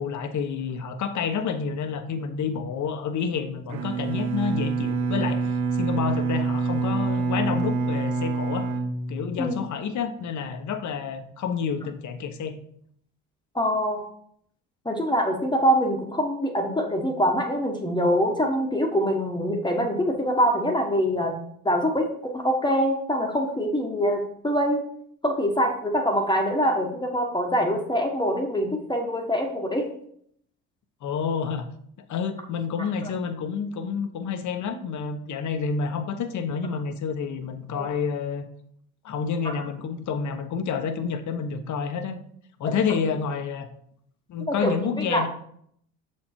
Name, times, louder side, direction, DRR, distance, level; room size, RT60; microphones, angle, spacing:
voice 1, 0.0-8.7 9.1-12.6 31.0-31.7 32.1-38.5 39.0-42.2 42.6-43.7 44.3-45.3, left 6 dB, 50° left, 8 dB, 1.0 m, -29 dB
Bowed string instrument, 3.7-9.7, right 4 dB, 50° right, 1.0 m, -26 dB
voice 2, 13.5-14.0 14.8-21.4 21.6-24.9 25.2-29.8 37.8-37.9 39.4-39.5 42.6-42.7 44.5-45.3, equal, 10° left, 2 dB, 1.3 m, -24 dB
6.3 x 4.5 x 4.4 m, 0.67 s
supercardioid pair, 75°, 37 cm